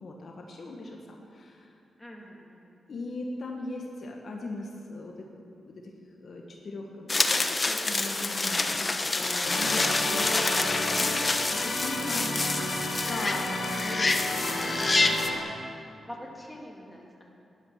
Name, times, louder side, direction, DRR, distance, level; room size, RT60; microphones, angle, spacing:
voice 1, 0.0-1.7 2.9-5.3 5.6-5.9 6.2-8.9 9.1-11.2 11.5-12.4 13.1-15.3, left 2 dB, 60° left, 0 dB, 1.6 m, -39 dB
voice 2, 2.0-2.7 8.6-8.8 9.2-9.4 12.5-12.8 16.1-17.3, equal, 10° left, -2 dB, 2.6 m, -45 dB
sound 1, 7.1-15.3, left 2 dB, 30° left, 1.0 m, -27 dB
sound 2, 9.4-15.4, left 2 dB, 75° left, 3.6 m, -32 dB
14.0 x 11.5 x 5.8 m, 2.6 s
cardioid pair, 80°, 0 cm